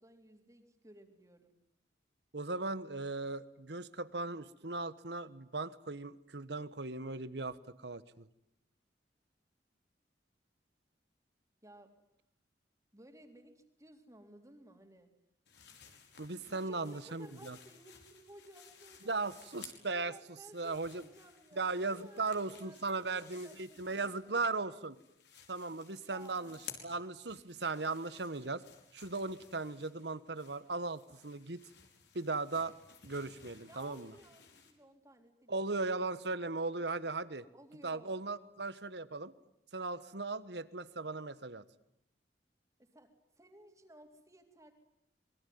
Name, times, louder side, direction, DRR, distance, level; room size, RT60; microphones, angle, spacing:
voice 1, 0.0-1.5 11.6-11.9 12.9-15.1 16.5-19.3 19.9-24.8 25.8-26.6 33.7-35.7 37.5-38.1 42.8-43.1 43.4-44.7, right 1 dB, 20° right, 5 dB, 3.5 m, -57 dB
voice 2, 2.3-8.3 16.2-17.6 19.0-20.1 20.5-21.0 21.5-25.0 25.5-26.6 26.8-28.6 28.9-31.6 32.1-32.7 33.0-34.1 35.5-37.4 37.8-39.3 39.7-41.6, right 3 dB, 70° right, 15 dB, 1.4 m, -37 dB
sound 1, 15.5-20.0 20.3-24.5 24.8-34.7, left 7 dB, 75° left, 5.3 m, -57 dB
26.5 x 22.5 x 9.5 m, 0.76 s
head